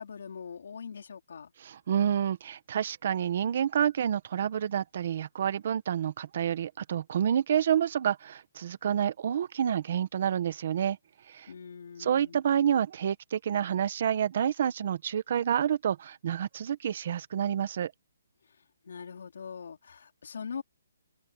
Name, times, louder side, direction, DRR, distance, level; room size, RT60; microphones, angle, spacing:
voice 1, 0.0-1.5 11.5-12.4 18.9-20.6, left 6 dB, 55° left, 4.3 m, -42 dB
voice 2, 1.6-11.0 11.3-11.5 12.0-17.9, right 9 dB, 35° right, 1.2 m, -28 dB
hypercardioid pair, 175°, 0 cm